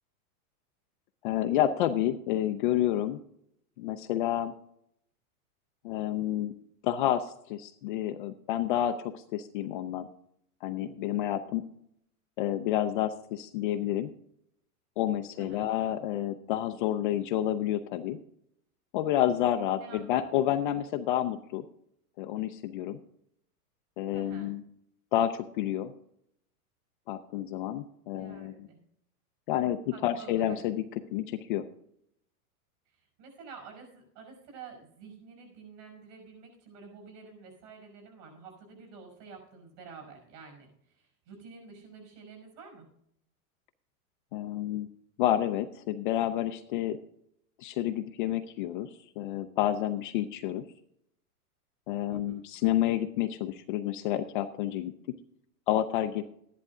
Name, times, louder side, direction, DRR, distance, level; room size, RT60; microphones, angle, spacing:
voice 1, 1.2-3.2 3.8-4.5 5.8-6.5 6.8-10.1 10.6-11.6 12.4-14.1 15.0-18.2 18.9-21.6 22.2-23.0 24.0-24.6 25.1-25.9 27.1-28.5 29.5-30.8 31.1-31.7 44.3-44.9 45.2-47.0 47.6-48.9 49.2-50.6 51.9-54.9 55.7-56.2, left 12 dB, 35° left, 8 dB, 0.5 m, -29 dB
voice 2, 15.4-15.7 19.8-20.3 24.1-24.5 28.2-28.8 29.9-30.6 32.9-42.9 52.1-52.5, right 5 dB, 55° right, 3 dB, 5.9 m, -49 dB
13.5 x 11.0 x 3.7 m, 0.72 s
supercardioid pair, 155°, 45 cm